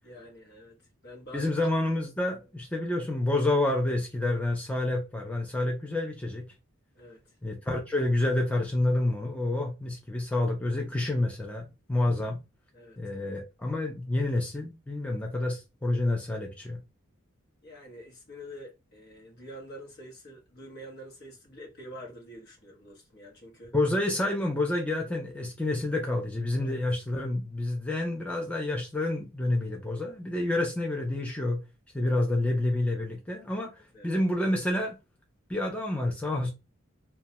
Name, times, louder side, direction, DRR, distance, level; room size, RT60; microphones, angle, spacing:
voice 1, 0.0-0.8 1.0-1.6 6.9-7.3 12.7-13.0 17.6-23.7 26.6-26.8 33.8-34.7, equal, 50° left, 0.9 m, -47 dB
voice 2, 1.3-6.4 7.4-12.4 13.0-16.8 23.7-31.6 31.9-33.7 34.0-34.9 35.5-36.5, left 2 dB, 5° left, 0.4 m, -28 dB
2.2 x 2.1 x 2.8 m
head